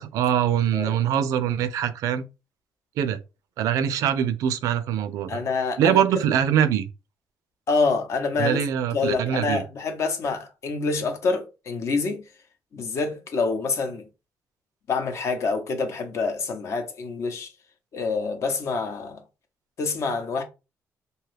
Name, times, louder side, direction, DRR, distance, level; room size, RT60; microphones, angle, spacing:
voice 1, 0.0-2.2 3.0-3.2 3.6-5.4 5.8-6.9 8.4-9.6, right 9 dB, 85° right, 0.4 m, -23 dB
voice 2, 5.3-6.0 7.7-8.6 8.9-12.2 12.7-14.1 14.9-17.5 17.9-19.2 19.8-20.4, left 4 dB, 55° left, 0.7 m, -26 dB
2.7 x 2.3 x 3.3 m
cardioid pair, 110°, 6 cm